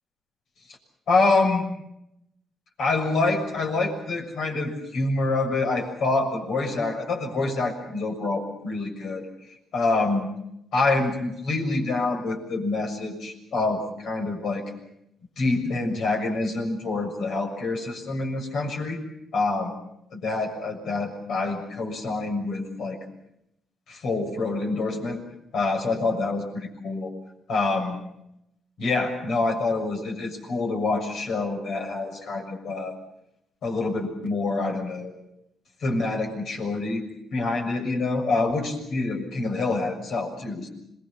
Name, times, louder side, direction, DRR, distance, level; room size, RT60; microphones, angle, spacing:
voice 1, 1.1-1.6 2.8-9.2 9.7-10.3 10.7-14.6 15.4-19.0 19.3-19.7 20.1-23.0 23.9-25.2 25.5-27.1 27.5-28.0 28.8-32.9 33.6-35.1 35.8-37.0 37.3-40.7, left 3 dB, 70° left, 3 dB, 6.6 m, -26 dB
27.0 x 21.5 x 7.2 m, 0.80 s
cardioid pair, 90°, 0 cm